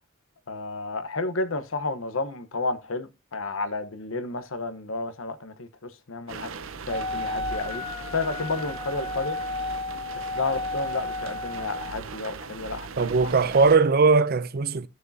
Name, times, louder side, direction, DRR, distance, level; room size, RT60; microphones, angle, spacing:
voice 1, 0.5-6.5 6.9-9.4 10.3-13.1, left 3 dB, 80° left, 1.1 m, -31 dB
sound 1, 6.3-13.8, right 4 dB, 80° right, 0.8 m, -39 dB
Wind instrument woodwind instrument, 6.9-11.9, left 3 dB, 30° left, 1.5 m, -33 dB
voice 2, 13.0-14.9, right 4 dB, 50° right, 0.5 m, -20 dB
14.5 x 6.4 x 2.7 m
head